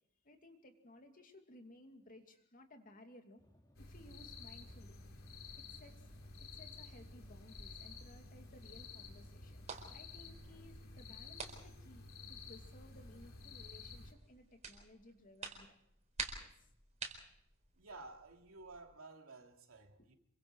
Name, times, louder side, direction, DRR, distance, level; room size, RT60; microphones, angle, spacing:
voice 1, 0.2-3.4 3.8-4.9 5.6-6.1 6.5-9.6 9.9-15.8 16.3-16.7 20.0-20.1, left 1 dB, 40° left, 2.6 m, -59 dB
sound 1, 3.4-10.7, equal, 20° left, 2.6 m, -67 dB
sound 2, 3.7-14.1, left 3 dB, 75° left, 3.6 m, -52 dB
sound 3, 7.5-18.8, right 5 dB, 35° right, 4.3 m, -51 dB
voice 2, 17.8-20.1, right 3 dB, 80° right, 2.8 m, -53 dB
27.0 x 24.0 x 4.8 m
head